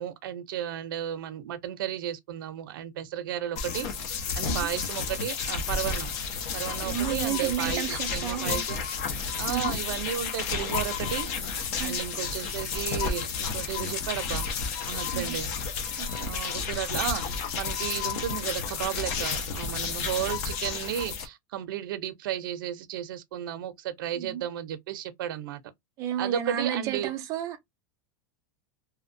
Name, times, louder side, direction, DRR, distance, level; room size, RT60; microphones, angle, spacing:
voice 1, 0.0-6.1 6.5-8.8 9.4-14.5 14.9-15.5 16.1-25.6 26.2-27.1, right 11 dB, 80° right, 0.5 m, -34 dB
sound 1, 3.6-21.3, left 5 dB, 45° left, 0.6 m, -31 dB
voice 2, 6.8-8.6 9.5-9.7 11.8-12.0 15.1-15.4 16.0-16.3 24.2-24.4 26.0-27.6, right 10 dB, 30° right, 0.5 m, -32 dB
2.7 x 2.2 x 2.5 m
supercardioid pair, 170°, 11 cm